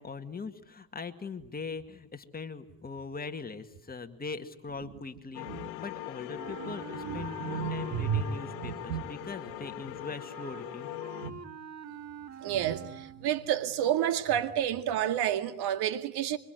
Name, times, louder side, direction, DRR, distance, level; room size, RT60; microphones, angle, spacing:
voice 1, 0.0-10.9, left 4 dB, 20° left, 2.2 m, -41 dB
sound 1, 5.3-11.3, left 17 dB, 80° left, 1.5 m, -41 dB
Wind instrument woodwind instrument, 6.4-13.4, right 7 dB, 40° right, 2.1 m, -46 dB
voice 2, 7.0-8.2 8.6-9.0 11.2-11.4 12.4-16.4, right 10 dB, 65° right, 2.2 m, -30 dB
26.0 x 24.5 x 9.4 m
supercardioid pair, 100°, 43 cm